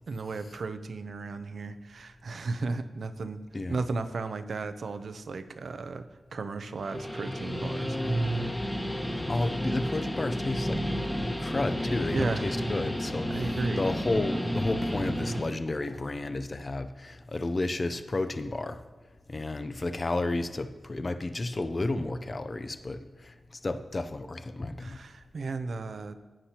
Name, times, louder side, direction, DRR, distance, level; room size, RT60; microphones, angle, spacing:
voice 1, 0.1-3.4 3.7-6.1 6.3-8.0 12.1-12.4 13.3-13.8 24.8-26.1, right 3 dB, 70° right, 10 dB, 0.6 m, -34 dB
Guitar, 6.7-15.5, equal, 15° left, 1.3 m, -31 dB
voice 2, 9.1-10.8 11.2-18.8 19.3-23.3 23.6-25.0, left 2 dB, 35° left, 10 dB, 0.6 m, -32 dB
15.0 x 9.9 x 2.9 m, 1.2 s
wide cardioid pair, 75°, 0 cm